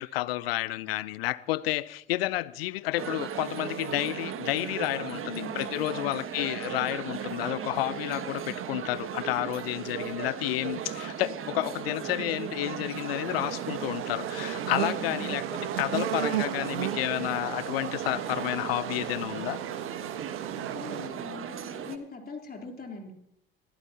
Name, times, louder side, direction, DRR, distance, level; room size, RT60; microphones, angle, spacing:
voice 1, 0.0-19.6, left 17 dB, 75° left, 0.7 m, -31 dB
sound 1, 3.0-22.0, right 8 dB, 45° right, 1.4 m, -37 dB
voice 2, 5.2-6.2 14.9-15.4 20.5-23.1, left 3 dB, 30° left, 3.6 m, -42 dB
sound 2, 13.1-21.1, right 11 dB, 80° right, 0.9 m, -35 dB
23.0 x 15.0 x 2.9 m
hypercardioid pair, 60°, 30 cm